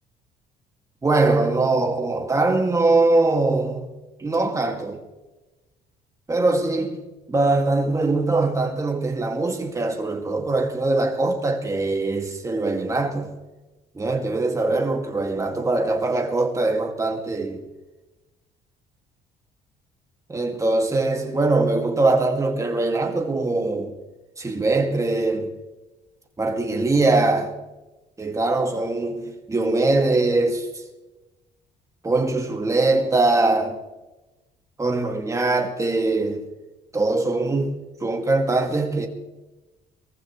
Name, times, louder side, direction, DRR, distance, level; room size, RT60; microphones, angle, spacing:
voice 1, 1.0-3.8 4.2-5.0 6.3-13.4 13.9-17.6 20.3-23.9 24.4-25.5 26.4-27.6 28.2-30.7 32.0-33.8 34.8-36.4 36.9-39.1, right 2 dB, 20° right, 2.4 m, -22 dB
23.0 x 14.5 x 3.3 m
cardioid pair, 110°, 17 cm